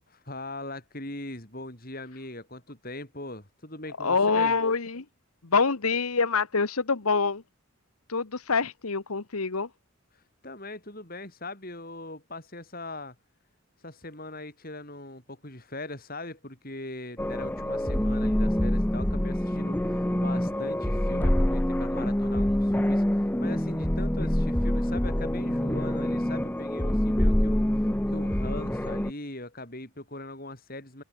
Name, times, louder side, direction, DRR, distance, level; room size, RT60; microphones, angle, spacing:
voice 1, 0.1-4.5 10.1-13.1 13.8-31.0, left 2 dB, 40° left, 6.3 m, -40 dB
voice 2, 4.0-5.0 5.4-7.4 8.1-9.7, left 4 dB, 80° left, 1.3 m, -25 dB
sound 1, 17.2-29.1, left 1 dB, 10° left, 0.6 m, -26 dB
head